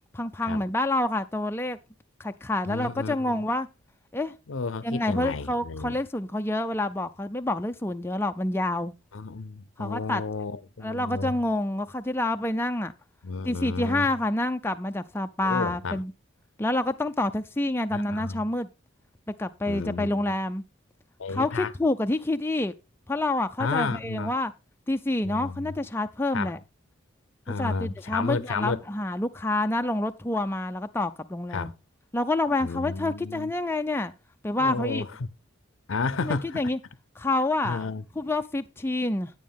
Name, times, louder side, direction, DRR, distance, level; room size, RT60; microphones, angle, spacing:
voice 1, 0.1-1.8 2.2-3.7 4.1-4.3 4.8-8.9 9.8-10.2 10.8-12.9 13.5-16.1 16.6-18.7 19.4-20.6 21.3-22.7 23.1-24.5 24.9-26.6 27.5-31.7 32.1-34.1 34.4-35.0 36.2-36.8 37.2-37.9 38.2-39.3, left 2 dB, 10° left, 0.4 m, -28 dB
voice 2, 2.6-3.4 4.5-6.0 9.1-11.3 13.2-14.1 15.4-16.0 17.9-18.4 19.7-20.3 21.2-21.7 23.6-24.3 25.2-25.7 26.3-26.5 27.5-28.8 31.5-31.7 32.6-33.5 34.6-35.3 35.9-36.6 37.6-38.0, left 4 dB, 75° left, 0.6 m, -32 dB
9.4 x 9.3 x 3.5 m
head